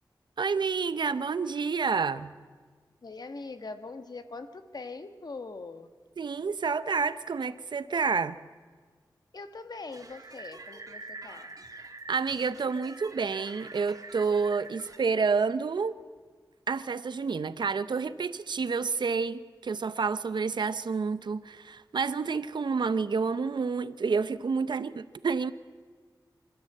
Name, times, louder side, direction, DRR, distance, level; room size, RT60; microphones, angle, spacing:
voice 1, 0.4-2.3 6.2-8.4 12.1-15.9 16.7-25.5, right 5 dB, 85° right, 14 dB, 0.7 m, -29 dB
voice 2, 3.0-5.9 9.3-11.5, left 3 dB, 65° left, 9 dB, 1.4 m, -42 dB
sound 1, 9.9-15.0, right 3 dB, 50° right, 2.1 m, -46 dB
26.5 x 13.0 x 7.9 m, 1.5 s
wide cardioid pair, 70°, 8 cm